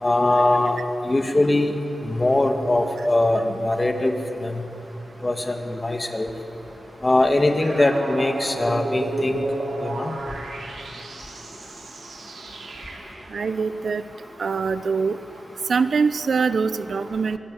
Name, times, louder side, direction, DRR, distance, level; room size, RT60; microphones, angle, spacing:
voice 1, 0.0-1.7 2.0-4.1 4.4-4.6 5.2-6.3 7.0-9.4 9.8-10.1, left 2 dB, 30° left, 5 dB, 2.3 m, -21 dB
sound 1, 7.6-13.3, right 2 dB, 90° right, 3.2 m, -32 dB
voice 2, 13.3-14.0 14.4-15.1 15.7-17.4, right 5 dB, 70° right, 13 dB, 0.7 m, -23 dB
24.5 x 16.5 x 9.8 m, 3.0 s
wide cardioid pair, 75°, 0 cm